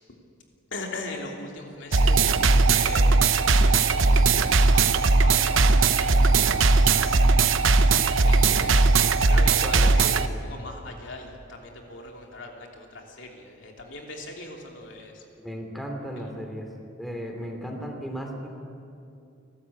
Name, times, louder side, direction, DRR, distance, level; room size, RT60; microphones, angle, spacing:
voice 1, 0.7-2.3 2.5-4.2 4.7-6.4 6.8-7.1 7.9-8.8 9.3-15.2, left 2 dB, 65° left, 1 dB, 3.1 m, -40 dB
sound 1, 1.9-10.3, right 3 dB, 85° right, 0.9 m, -19 dB
voice 2, 9.6-9.9 10.2-10.4 15.4-16.7 17.0-18.5, equal, ahead, 2 dB, 2.7 m, -35 dB
30.0 x 13.0 x 8.6 m, 2.5 s
head